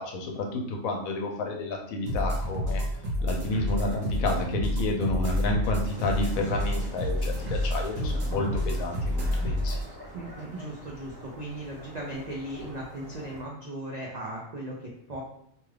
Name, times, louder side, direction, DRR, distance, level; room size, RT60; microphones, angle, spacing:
voice 1, 0.0-2.8 3.2-9.8, left 2 dB, 80° left, 2 dB, 1.0 m, -30 dB
sound 1, 2.1-9.9, left 1 dB, 70° right, 1.2 m, -29 dB
sound 2, 5.8-13.4, equal, 50° right, 1.1 m, -46 dB
voice 2, 7.9-8.4 10.1-15.2, right 1 dB, 85° right, -3 dB, 0.3 m, -37 dB
2.9 x 2.3 x 3.2 m, 0.70 s
omnidirectional pair, 1.5 m